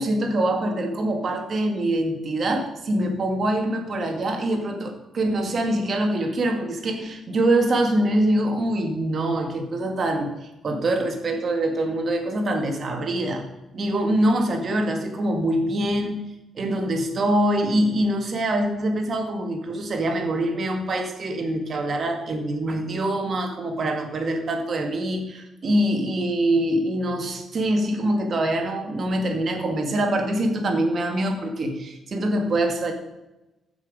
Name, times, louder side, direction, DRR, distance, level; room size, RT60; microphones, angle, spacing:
voice 1, 0.0-10.3 10.6-13.4 13.7-16.2 16.6-32.9, right 1 dB, 40° right, 4 dB, 2.0 m, -24 dB
15.5 x 6.2 x 5.2 m, 0.98 s
cardioid pair, 160°, 0 cm